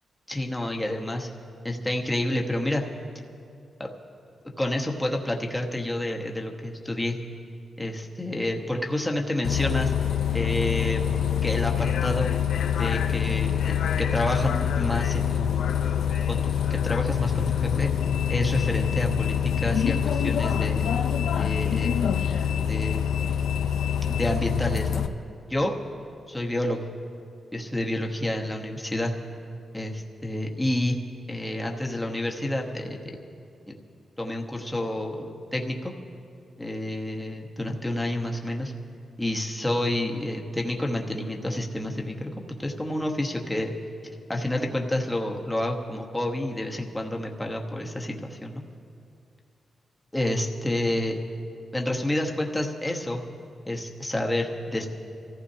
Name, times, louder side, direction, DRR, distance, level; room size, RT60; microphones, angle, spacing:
voice 1, 0.3-1.3 1.6-2.8 4.6-7.2 7.8-9.9 10.3-11.1 11.4-12.3 12.8-15.8 16.3-17.9 18.3-20.9 21.4-22.4 22.7-23.0 24.1-25.0 25.5-25.7 26.3-26.8 27.5-29.1 29.7-31.0 31.3-33.0 33.7-33.8 34.2-35.9 36.6-38.7 39.2-43.7 44.3-48.6 50.1-51.2 51.7-53.2 53.7-54.9, left 1 dB, 10° left, 1 dB, 1.1 m, -29 dB
Bus, 9.4-25.1, left 8 dB, 85° left, 0.6 m, -25 dB
26.5 x 14.5 x 2.8 m, 2.5 s
wide cardioid pair, 140°, 0 cm